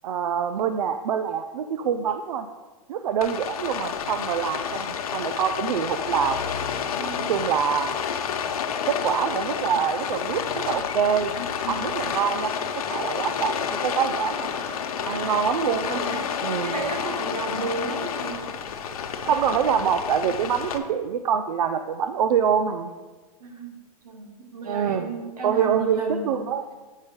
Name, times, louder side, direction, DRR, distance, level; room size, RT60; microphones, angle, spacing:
voice 1, 0.0-2.5 2.9-6.4 7.3-7.9 8.9-11.3 11.7-14.8 15.1-16.0 16.4-16.8 19.2-22.9 24.6-25.1 25.4-26.6, right 7 dB, 75° right, 8 dB, 0.5 m, -25 dB
Rain, 3.2-20.8, left 7 dB, 75° left, 0.8 m, -30 dB
voice 2, 7.0-7.4 11.7-12.2 15.1-15.4 15.8-18.4 23.4-23.8 24.0-26.5, right 3 dB, 90° right, 4 dB, 1.4 m, -33 dB
7.4 x 5.2 x 5.1 m, 1.3 s
hypercardioid pair, 140°, 19 cm